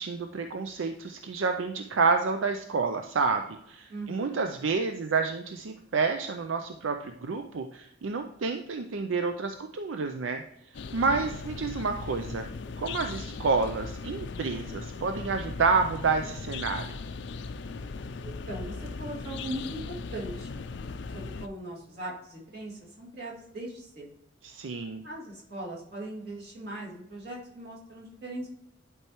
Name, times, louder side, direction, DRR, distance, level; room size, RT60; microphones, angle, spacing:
voice 1, 0.0-10.4 10.9-12.5 12.8-17.0 24.4-25.0, right 4 dB, 80° right, 6 dB, 0.5 m, -29 dB
voice 2, 3.9-4.4 11.1-11.3 18.2-20.5 21.1-24.1 25.0-28.5, right 1 dB, 55° right, -4 dB, 2.4 m, -39 dB
sound 1, 10.7-21.5, left 4 dB, 65° left, 0.4 m, -38 dB
11.0 x 4.5 x 3.0 m, 0.81 s
head